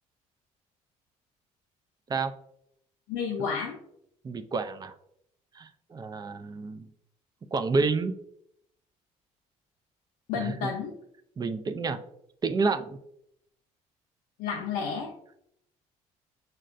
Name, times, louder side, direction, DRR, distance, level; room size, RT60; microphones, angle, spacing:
voice 1, 3.1-3.8 10.3-11.0 14.4-15.1, left 6 dB, 85° left, -2 dB, 0.6 m, -31 dB
voice 2, 4.2-4.9 5.6-6.9 7.5-8.1 10.3-10.7 11.4-12.0 12.4-13.0, right 4 dB, 30° right, 8 dB, 0.4 m, -29 dB
6.4 x 2.2 x 2.5 m, 0.74 s
cardioid pair, 85°, 14 cm